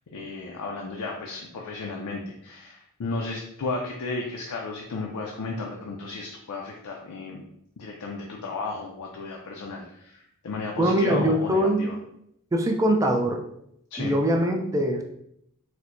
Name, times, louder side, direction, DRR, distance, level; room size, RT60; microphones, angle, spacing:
voice 1, 0.1-7.4 7.8-12.0 13.9-14.2, left 3 dB, 90° left, -1 dB, 0.4 m, -34 dB
voice 2, 10.8-11.9 12.5-13.4 14.0-15.0, right 1 dB, 15° right, 3 dB, 0.3 m, -22 dB
4.3 x 2.1 x 2.5 m, 0.75 s
head